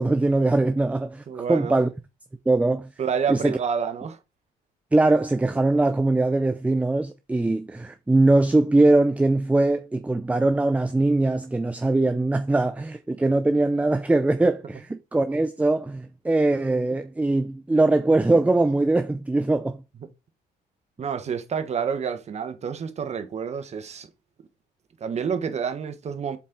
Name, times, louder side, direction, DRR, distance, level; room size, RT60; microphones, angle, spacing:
voice 1, 0.0-1.9 2.5-2.9 3.3-3.5 4.9-19.8, right 2 dB, 10° right, 0.5 m, -21 dB
voice 2, 1.3-1.8 3.0-4.2 21.0-24.1 25.0-26.4, right 6 dB, 40° right, 1.3 m, -28 dB
7.2 x 4.3 x 3.9 m
cardioid pair, 110°, 17 cm